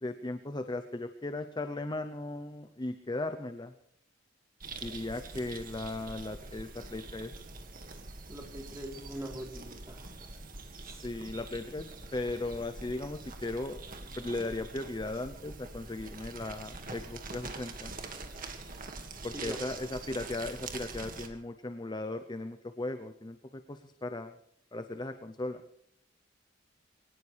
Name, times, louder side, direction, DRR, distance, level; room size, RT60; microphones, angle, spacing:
voice 1, 0.0-3.7 4.8-7.3 11.0-13.8 14.2-17.9 19.2-24.4 24.7-25.6, left 2 dB, 25° left, 8 dB, 0.7 m, -37 dB
sound 1, 4.6-21.3, right 3 dB, 45° right, 2.0 m, -44 dB
voice 2, 8.3-10.1 10.8-11.0 19.3-19.7, right 1 dB, 15° right, 0 dB, 3.6 m, -42 dB
23.0 x 18.5 x 3.4 m, 0.72 s
head